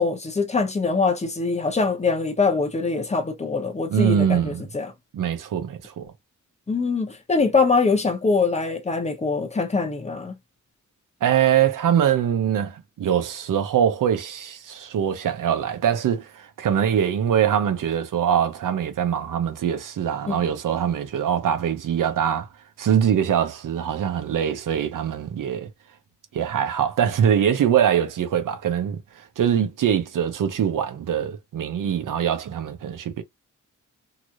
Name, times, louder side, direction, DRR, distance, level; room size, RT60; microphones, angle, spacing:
voice 1, 0.0-4.9 6.7-10.4 20.3-20.5, left 4 dB, 20° left, 0.8 m, -23 dB
voice 2, 3.9-4.6 5.1-6.1 11.2-22.5 22.8-25.7 26.3-33.2, right 9 dB, 85° right, 0.8 m, -23 dB
3.1 x 2.9 x 2.5 m
wide cardioid pair, 145°, 31 cm